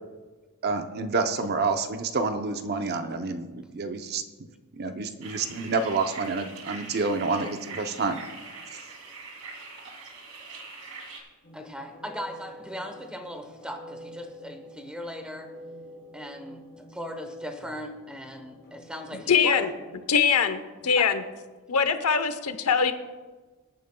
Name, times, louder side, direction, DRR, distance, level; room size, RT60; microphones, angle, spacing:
voice 1, 0.6-4.2 4.7-8.2, right 4 dB, 45° right, 7 dB, 0.7 m, -28 dB
sound 1, 5.2-11.2, right 4 dB, 85° right, 2.3 m, -43 dB
sound 2, 11.4-20.2, equal, 50° left, 3.6 m, -47 dB
voice 2, 11.5-15.6 16.1-19.7 21.0-21.1, equal, 5° right, 5 dB, 1.0 m, -38 dB
voice 3, 19.3-19.7 20.1-21.2 21.7-22.9, left 6 dB, 90° left, 9 dB, 0.9 m, -22 dB
23.5 x 9.1 x 2.3 m, 1.3 s
head